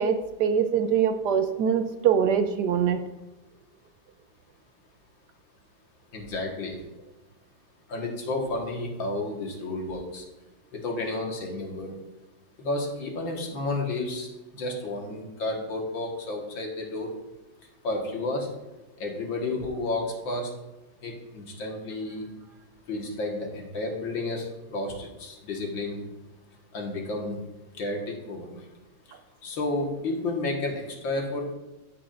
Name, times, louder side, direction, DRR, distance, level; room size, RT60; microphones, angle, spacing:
voice 1, 0.0-3.0, right 7 dB, 70° right, 8 dB, 1.1 m, -23 dB
voice 2, 6.1-6.8 7.9-10.2 10.7-11.9 12.6-14.3 14.5-17.1 17.8-18.5 19.0-20.5 21.0-22.3 22.9-26.0 26.7-27.4 27.8-28.6 29.4-31.5, left 2 dB, 90° left, 0 dB, 2.3 m, -31 dB
14.5 x 6.2 x 2.5 m, 1.1 s
omnidirectional pair, 2.0 m